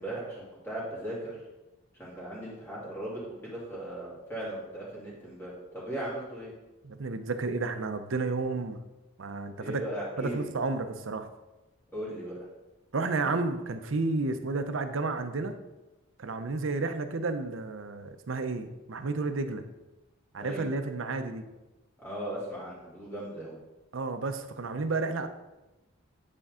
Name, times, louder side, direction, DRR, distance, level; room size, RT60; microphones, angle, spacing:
voice 1, 0.0-1.4 1.9-6.5 9.6-10.5 11.9-12.4 20.4-20.7 22.0-23.6, right 1 dB, 10° left, -7 dB, 2.8 m, -38 dB
voice 2, 6.8-8.8 9.2-9.8 10.2-11.3 12.9-15.5 16.2-19.6 20.3-21.4 23.9-25.3, right 3 dB, 75° right, 8 dB, 0.6 m, -31 dB
9.8 x 4.4 x 3.7 m, 1.0 s
head